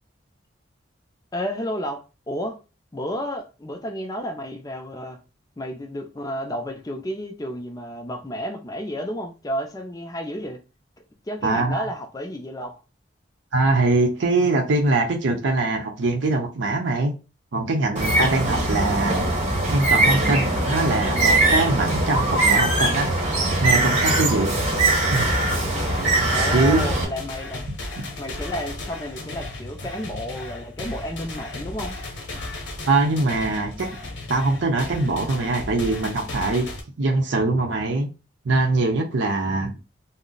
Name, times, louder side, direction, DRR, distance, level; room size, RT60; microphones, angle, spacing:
voice 1, 1.3-2.6 2.9-5.2 5.6-10.6 11.3-12.8 26.3-27.7 28.2-32.0, equal, 20° left, 0.4 m, -31 dB
voice 2, 11.4-11.9 13.5-17.1 17.5-19.2 19.7-23.1 23.6-24.5 25.1-25.3 26.5-26.8 28.0-28.1 32.9-33.9 34.3-36.7 37.0-38.1 38.4-39.8, right 2 dB, 80° right, 0.6 m, -22 dB
Bird, 18.0-27.1, right 2 dB, 40° right, 0.9 m, -21 dB
sound 1, 25.1-36.8, left 2 dB, 70° left, 0.8 m, -35 dB
2.5 x 2.0 x 3.7 m
head